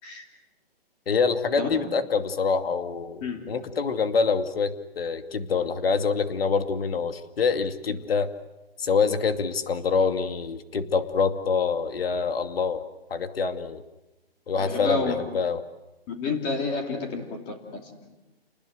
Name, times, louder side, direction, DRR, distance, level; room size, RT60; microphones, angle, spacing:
voice 1, 1.1-8.3 8.8-12.8 13.1-13.8 14.5-15.6, left 5 dB, 70° left, 8 dB, 2.5 m, -25 dB
voice 2, 3.2-3.7 14.6-15.3 16.1-18.2, left 3 dB, 20° left, 3 dB, 2.9 m, -30 dB
29.5 x 20.0 x 8.2 m, 1.0 s
hypercardioid pair, 155°, 31 cm